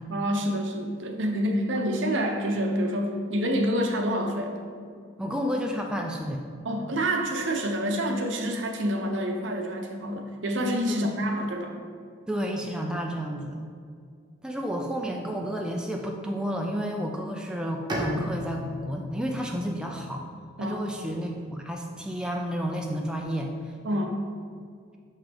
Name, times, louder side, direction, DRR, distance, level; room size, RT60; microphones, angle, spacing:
voice 1, 0.1-4.6 6.6-11.8 20.6-21.0 23.8-24.2, equal, 70° right, 2 dB, 0.8 m, -27 dB
voice 2, 5.2-6.4 10.9-11.1 12.3-13.7 14.4-20.3 20.6-23.7, equal, 5° right, 1 dB, 0.3 m, -31 dB
Bowed string instrument, 17.9-21.5, left 1 dB, 20° right, 0.7 m, -36 dB
5.9 x 5.4 x 3.4 m, 2.1 s
head